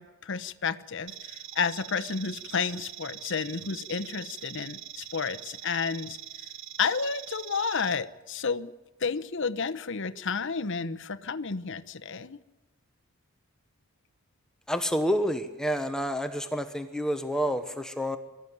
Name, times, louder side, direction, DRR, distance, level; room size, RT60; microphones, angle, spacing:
voice 1, 0.0-6.2 6.8-8.7 9.0-12.4, left 5 dB, 60° left, 11 dB, 0.9 m, -31 dB
sound 1, 1.1-7.9, right 11 dB, 60° right, 1.1 m, -43 dB
voice 2, 14.7-18.2, equal, 5° left, 7 dB, 1.0 m, -29 dB
24.5 x 13.5 x 9.4 m, 1.1 s
head